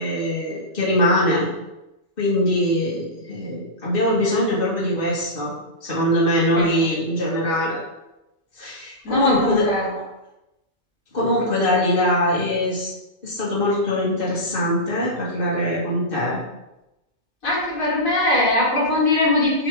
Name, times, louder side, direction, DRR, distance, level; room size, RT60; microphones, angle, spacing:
voice 1, 0.0-1.5 2.2-5.5 5.8-7.8 8.6-9.7 11.1-12.9 13.2-16.4, left 1 dB, 40° left, -6 dB, 2.2 m, -22 dB
voice 2, 9.0-9.9 17.4-19.7, left 2 dB, 85° left, -5 dB, 2.7 m, -21 dB
6.8 x 6.2 x 3.7 m, 0.95 s
omnidirectional pair, 1.4 m